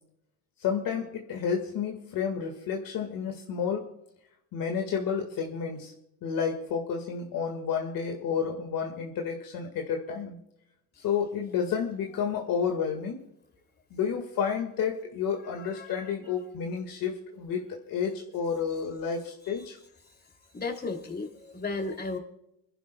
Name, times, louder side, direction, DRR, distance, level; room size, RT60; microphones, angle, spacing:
voice 1, 0.6-3.9 4.5-5.9 6.2-10.4 11.0-13.2 13.9-19.8, left 7 dB, 60° left, 3 dB, 1.9 m, -31 dB
voice 2, 15.6-16.0 20.5-22.2, left 3 dB, 25° left, 4 dB, 2.9 m, -34 dB
29.5 x 11.5 x 2.3 m, 0.82 s
supercardioid pair, 100°, 38 cm